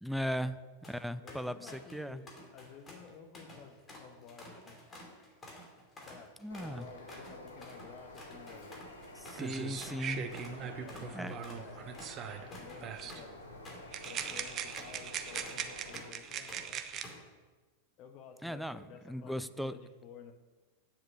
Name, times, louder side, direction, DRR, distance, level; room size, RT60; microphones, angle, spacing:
voice 1, 0.0-0.6 0.9-2.2 6.4-6.9 9.3-10.3 11.1-11.3 18.4-19.7, equal, ahead, 13 dB, 0.4 m, -37 dB
sound 1, 0.8-1.0 1.3-2.0 2.3-10.0 10.3-10.6 10.9-16.2 16.5-17.3, left 1 dB, 20° left, 2.8 m, -51 dB
voice 2, 1.2-4.8 6.0-8.8 10.6-13.5 14.0-17.0 18.0-20.3, left 6 dB, 40° left, 6 dB, 1.3 m, -53 dB
Bird, 6.5-16.0, left 1 dB, 75° left, 1.5 m, -51 dB
sound 2, 9.0-9.1 9.4-12.5 12.8-13.2 13.9-17.0, right 8 dB, 30° right, 0.8 m, -40 dB
8.8 x 7.7 x 6.8 m, 1.3 s
figure-of-eight pair, 90°, 0 cm